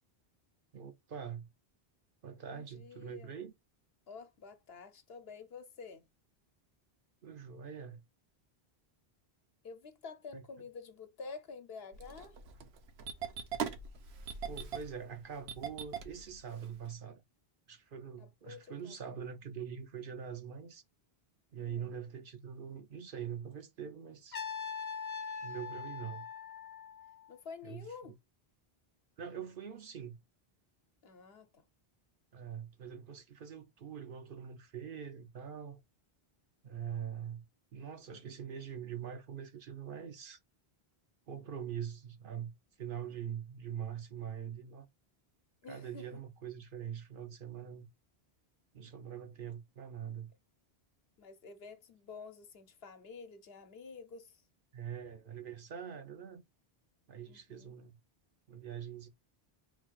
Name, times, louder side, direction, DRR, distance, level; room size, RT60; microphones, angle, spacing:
voice 1, 0.7-1.5 2.2-3.5 7.2-8.0 10.3-10.4 14.5-17.2 17.7-20.8 21.5-24.4 25.4-26.3 27.6-27.8 29.2-30.2 32.3-35.8 36.6-37.4 37.7-40.4 41.3-42.5 42.8-44.9 45.7-47.9 48.7-50.3 54.7-56.4 57.1-58.0 58.5-59.1, right 8 dB, 60° right, 0.8 m, -43 dB
voice 2, 2.5-3.3 4.1-6.0 9.6-12.4 18.2-19.2 21.6-21.9 27.3-28.2 31.0-31.6 45.6-46.1 51.2-54.4 57.3-57.7, left 5 dB, 70° left, 1.0 m, -49 dB
Engine starting, 11.9-16.9, right 7 dB, 90° right, 1.0 m, -41 dB
Trumpet, 24.3-27.3, left 6 dB, 40° left, 0.7 m, -42 dB
3.9 x 2.4 x 4.5 m
omnidirectional pair, 1.1 m